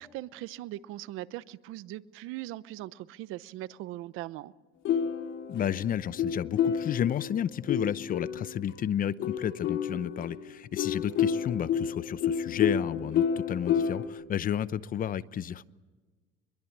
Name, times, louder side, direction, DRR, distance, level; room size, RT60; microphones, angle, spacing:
voice 1, 0.0-4.5, right 15 dB, 85° right, 0.9 m, -40 dB
sound 1, 4.8-8.7 9.2-14.1, left 8 dB, 70° left, 2.9 m, -30 dB
voice 2, 5.5-15.7, left 9 dB, 45° left, 0.8 m, -32 dB
24.5 x 22.5 x 8.8 m
cardioid pair, 135°, 21 cm